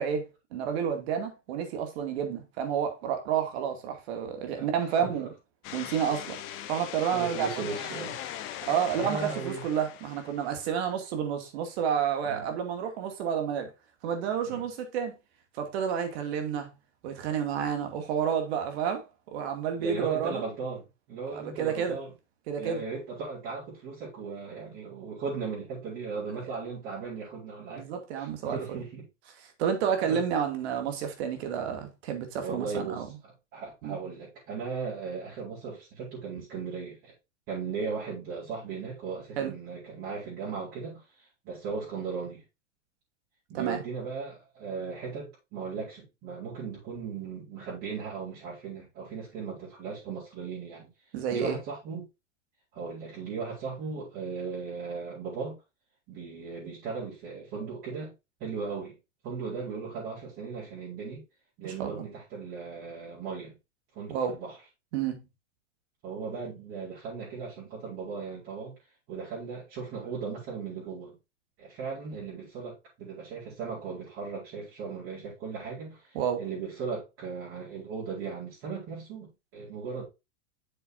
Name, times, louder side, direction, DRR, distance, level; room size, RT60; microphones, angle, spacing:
voice 1, 0.0-5.3 5.7-6.4 6.7-7.7 8.7-13.7 14.0-15.1 15.5-16.7 17.0-19.1 19.3-20.4 21.3-22.0 22.5-22.8 27.7-28.8 29.6-33.1 33.8-34.0 39.4-39.5 43.5-43.8 51.1-51.6 61.6-62.0 64.1-64.4 64.9-65.2 76.1-76.4, right 8 dB, 60° right, 2.4 m, -30 dB
voice 2, 4.5-5.3 7.1-8.2 8.9-9.6 12.2-12.4 14.5-14.6 19.8-22.1 22.6-27.9 28.2-29.0 30.0-30.2 32.4-37.1 37.5-42.4 43.5-50.9 51.3-52.1 52.7-55.6 56.1-58.1 58.4-59.0 59.2-61.2 61.6-63.5 63.9-64.6 66.0-68.8 69.1-71.2 71.6-80.0, right 5 dB, 35° right, 4.6 m, -37 dB
sound 1, 5.6-10.8, left 11 dB, 35° left, 1.0 m, -40 dB
8.1 x 6.9 x 2.6 m
supercardioid pair, 145°, 37 cm